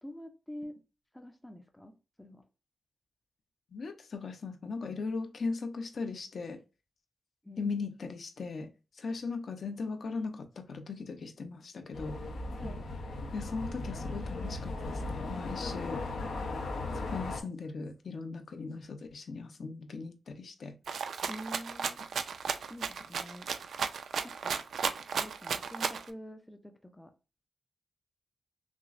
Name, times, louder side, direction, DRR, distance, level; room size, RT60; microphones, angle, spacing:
voice 1, 0.0-0.8 1.1-2.5 7.4-7.7 12.6-12.8 21.3-22.0 22.7-23.5 24.2-24.6 25.1-27.1, equal, 5° left, 0.4 m, -46 dB
voice 2, 3.7-6.6 7.6-8.7 9.0-12.2 13.3-16.0 16.9-20.8, left 4 dB, 55° left, 0.6 m, -38 dB
sound 1, 11.9-17.4, left 2 dB, 90° left, 0.7 m, -37 dB
Rattle (instrument), 20.9-26.1, right 6 dB, 80° right, 0.3 m, -34 dB
5.9 x 2.0 x 2.4 m
wide cardioid pair, 170°, 0 cm